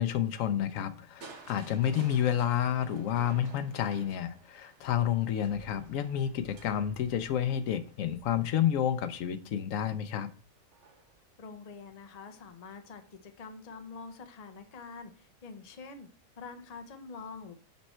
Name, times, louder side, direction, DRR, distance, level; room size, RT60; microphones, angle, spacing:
voice 1, 0.0-10.3, left 10 dB, 75° left, 1.0 m, -30 dB
Crushing, 1.2-9.2 10.7-11.2 11.7-11.8, right 5 dB, 55° right, 1.2 m, -53 dB
voice 2, 11.4-16.1 16.4-17.5, left 4 dB, 35° left, 0.7 m, -46 dB
7.3 x 4.4 x 4.3 m
omnidirectional pair, 1.5 m